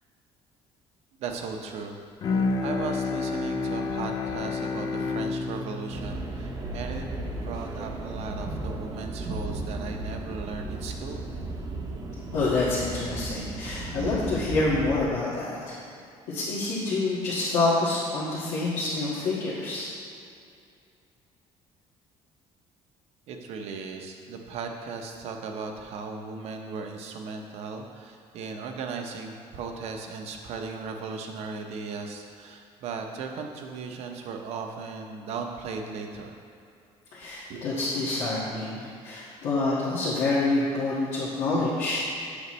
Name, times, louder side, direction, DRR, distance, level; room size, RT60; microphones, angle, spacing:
voice 1, 1.2-2.0 2.6-7.0 7.4-11.3 23.3-36.4 37.5-37.6, right 4 dB, 65° right, 3 dB, 0.8 m, -37 dB
Bowed string instrument, 2.2-7.6, left 4 dB, 35° left, 0.4 m, -30 dB
sound 1, 5.9-15.0, right 2 dB, 35° right, 0.8 m, -35 dB
voice 2, 12.3-15.8 16.3-19.9 37.1-42.1, left 2 dB, 85° left, -12 dB, 1.7 m, -27 dB
8.1 x 6.3 x 3.2 m, 2.5 s
cardioid pair, 155°, 12 cm